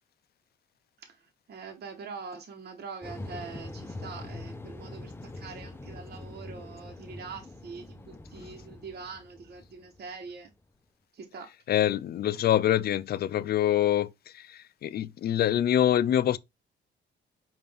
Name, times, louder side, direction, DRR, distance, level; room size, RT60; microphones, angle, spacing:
voice 1, 1.5-10.5 11.1-11.5, right 5 dB, 55° right, 1.1 m, -43 dB
sound 1, 3.0-10.5, left 2 dB, 10° left, 0.6 m, -43 dB
voice 2, 11.7-16.4, left 11 dB, 50° left, 0.4 m, -25 dB
5.1 x 2.5 x 3.4 m
cardioid pair, 90°, 20 cm